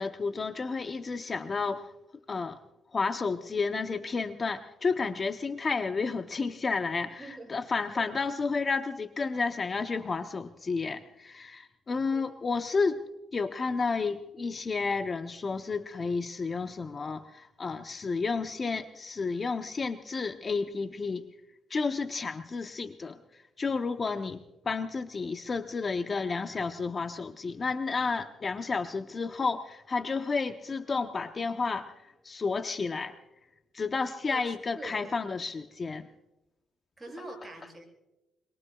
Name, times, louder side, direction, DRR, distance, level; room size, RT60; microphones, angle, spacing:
voice 1, 0.0-1.8 2.3-2.6 2.9-13.0 13.3-21.3 21.7-24.4 24.6-31.9 32.2-33.1 33.7-36.1, left 4 dB, 35° left, 8 dB, 0.7 m, -31 dB
voice 2, 7.2-7.6 7.9-8.0 12.1-12.3 24.0-24.1 34.3-35.0 37.0-37.8, right 2 dB, 15° right, 0 dB, 7.9 m, -44 dB
25.5 x 23.0 x 2.3 m, 0.98 s
cardioid pair, 90°, 0 cm